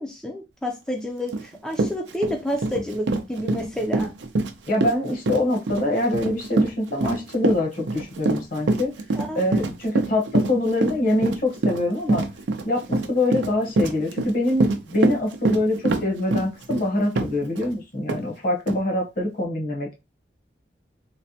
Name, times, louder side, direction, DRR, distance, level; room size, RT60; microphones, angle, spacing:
voice 1, 0.0-4.1 9.1-9.4, equal, 5° left, 1 dB, 0.4 m, -29 dB
Run, 1.3-1.4 1.7-17.7 18.1-18.2 18.7-18.8, right 2 dB, 85° right, 0.5 m, -25 dB
voice 2, 4.7-8.9 9.3-12.3 12.6-20.0, left 1 dB, 55° left, 1 dB, 1.1 m, -24 dB
3.2 x 2.2 x 2.7 m, 0.25 s
head